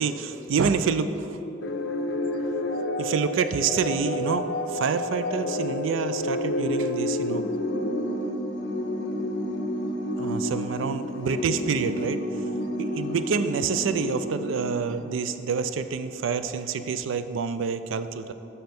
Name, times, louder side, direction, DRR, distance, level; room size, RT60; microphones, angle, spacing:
voice 1, 0.0-1.4 3.0-7.4 10.2-12.4 12.8-18.3, right 5 dB, 80° right, 11 dB, 0.3 m, -27 dB
sound 1, 1.6-15.3, left 1 dB, 55° left, 0.5 m, -30 dB
5.6 x 5.3 x 5.9 m, 2.9 s
head